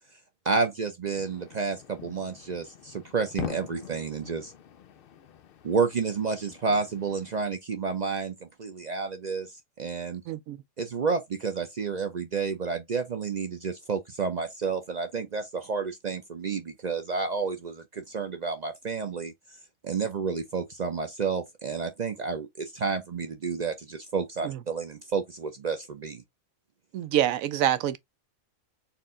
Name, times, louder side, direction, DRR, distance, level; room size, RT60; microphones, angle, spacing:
voice 1, 0.4-4.5 5.6-10.2 10.8-19.3 19.8-26.2, right 5 dB, 55° right, 0.5 m, -30 dB
sound 1, 1.0-7.5, left 9 dB, 65° left, 0.5 m, -43 dB
voice 2, 10.3-10.6 24.4-24.6 26.9-28.0, right 12 dB, 85° right, 1.0 m, -26 dB
4.3 x 2.5 x 3.6 m
omnidirectional pair, 1.4 m